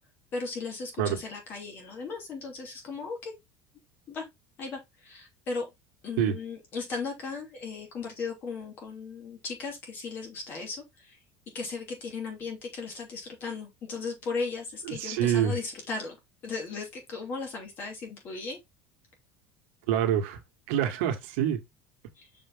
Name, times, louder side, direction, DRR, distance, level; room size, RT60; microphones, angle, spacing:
voice 1, 0.3-3.3 4.1-4.3 4.6-5.7 6.0-11.2 11.5-16.2 16.4-18.6 22.2-22.3, left 4 dB, 30° left, 2.9 m, -36 dB
voice 2, 15.0-15.6 19.9-20.4 20.7-21.6, right 9 dB, 80° right, 1.7 m, -26 dB
6.1 x 5.0 x 3.7 m
cardioid pair, 170°, 7 cm